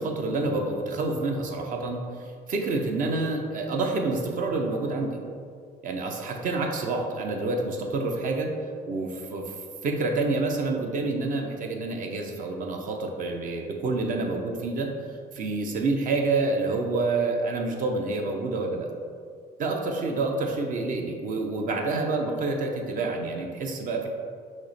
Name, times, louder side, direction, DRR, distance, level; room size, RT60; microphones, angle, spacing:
voice 1, 0.0-2.0 2.5-5.2 5.8-8.5 8.9-9.6 9.8-14.9 15.3-18.9 19.6-24.1, right 3 dB, 50° right, 2 dB, 0.6 m, -28 dB
5.9 x 2.1 x 4.0 m, 2.2 s
cardioid pair, 110°, 17 cm